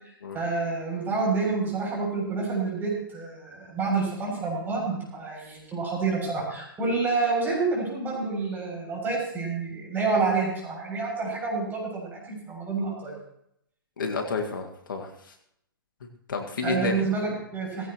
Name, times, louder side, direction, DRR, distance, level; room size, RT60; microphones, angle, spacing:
voice 1, 0.3-13.1 16.6-17.9, right 4 dB, 15° right, -2 dB, 7.3 m, -28 dB
voice 2, 14.0-15.3 16.3-16.9, left 4 dB, 65° left, 3 dB, 2.0 m, -30 dB
17.5 x 16.5 x 3.1 m, 0.75 s
figure-of-eight pair, 115°, 12 cm